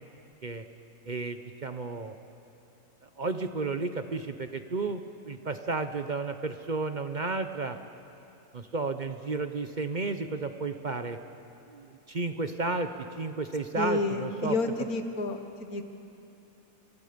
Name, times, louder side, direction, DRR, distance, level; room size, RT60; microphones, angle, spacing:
voice 1, 1.1-2.1 3.0-7.8 8.5-11.2 11.7-12.9 13.2-14.6, right 3 dB, 40° right, 8 dB, 0.8 m, -32 dB
voice 2, 13.8-15.9, left 2 dB, 90° left, 6 dB, 1.9 m, -30 dB
28.0 x 24.5 x 5.2 m, 2.7 s
omnidirectional pair, 1.5 m